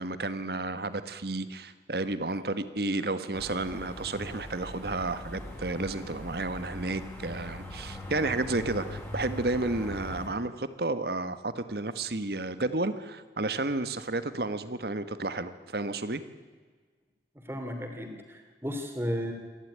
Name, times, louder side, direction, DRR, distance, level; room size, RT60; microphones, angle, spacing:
voice 1, 0.0-16.2, right 2 dB, 60° right, 12 dB, 1.3 m, -32 dB
sound 1, 3.3-10.3, left 1 dB, 15° left, 4.2 m, -41 dB
voice 2, 17.3-19.3, equal, 15° right, 4 dB, 3.0 m, -34 dB
27.5 x 12.0 x 9.9 m, 1.5 s
head